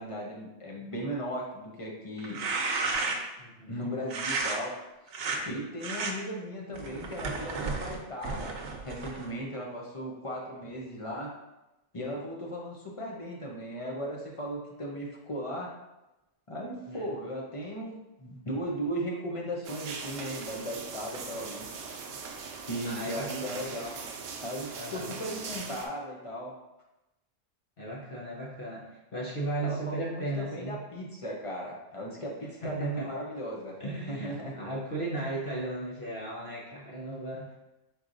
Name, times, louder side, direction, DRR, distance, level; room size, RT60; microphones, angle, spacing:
voice 1, 0.0-2.4 3.7-4.8 5.4-11.3 11.9-15.7 16.5-22.0 22.7-24.0 24.4-26.5 29.6-33.7 34.1-34.5, equal, 35° left, -3 dB, 0.7 m, -37 dB
sound 1, 2.2-3.4 4.1-4.6 5.1-5.4 5.8-6.1 6.7-9.3, right 3 dB, 90° right, 1.0 m, -32 dB
voice 2, 3.4-3.9 16.9-17.1 22.8-23.7 24.7-25.1 27.8-30.8 32.6-33.1 33.8-37.5, right 2 dB, 55° left, -6 dB, 1.0 m, -36 dB
sound 2, 19.6-25.9, right 5 dB, 65° right, 0.7 m, -40 dB
4.5 x 4.0 x 2.6 m, 0.96 s
omnidirectional pair, 1.2 m